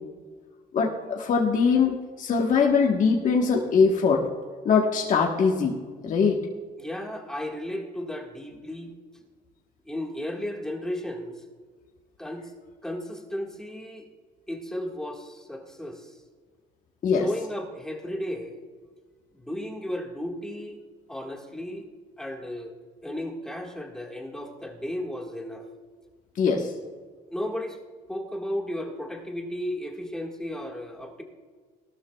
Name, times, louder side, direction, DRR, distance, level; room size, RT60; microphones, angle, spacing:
voice 1, 0.7-4.2 4.6-5.8 6.0-6.4 17.0-17.3 26.4-26.7, left 5 dB, 50° left, 0 dB, 1.3 m, -22 dB
voice 2, 6.8-8.9 9.8-11.4 12.2-12.5 12.8-14.1 14.5-16.1 17.2-18.6 19.3-20.8 21.1-21.9 22.2-22.7 23.0-25.6 27.3-27.8 28.1-31.2, left 1 dB, 5° left, 1 dB, 1.7 m, -34 dB
18.5 x 12.5 x 2.3 m, 1.5 s
cardioid pair, 110°, 17 cm